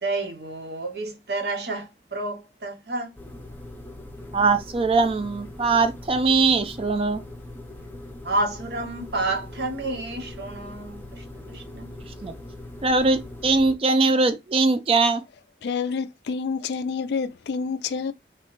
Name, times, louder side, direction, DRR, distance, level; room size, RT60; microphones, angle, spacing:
voice 1, 0.0-3.1 8.2-11.9, right 2 dB, 65° right, 0.8 m, -30 dB
sound 1, 3.1-13.7, left 1 dB, 10° left, 0.6 m, -41 dB
voice 2, 4.3-7.2 12.2-12.3 12.8-15.2, right 3 dB, 30° right, 0.4 m, -21 dB
voice 3, 15.6-18.1, left 5 dB, 70° left, 0.3 m, -28 dB
3.0 x 2.1 x 2.9 m
head